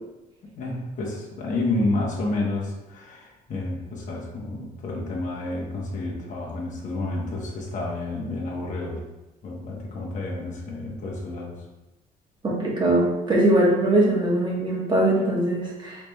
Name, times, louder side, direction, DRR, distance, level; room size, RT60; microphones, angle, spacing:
voice 1, 0.6-9.0 9.4-11.6, left 2 dB, 50° left, -3 dB, 1.1 m, -30 dB
voice 2, 12.4-16.0, right 1 dB, 25° right, -4 dB, 1.3 m, -21 dB
4.7 x 3.3 x 2.3 m, 1.0 s
cardioid pair, 110°, 17 cm